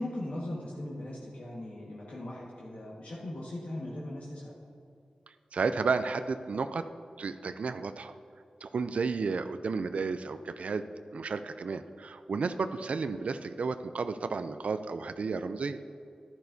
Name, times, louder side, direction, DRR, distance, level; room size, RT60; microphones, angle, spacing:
voice 1, 0.0-4.5, left 1 dB, 70° left, -5 dB, 1.5 m, -39 dB
voice 2, 5.5-6.9 7.2-8.2 8.6-10.8 11.1-15.8, right 4 dB, 70° right, 10 dB, 0.4 m, -32 dB
11.5 x 10.5 x 2.7 m, 2.4 s
wide cardioid pair, 80°, 2 cm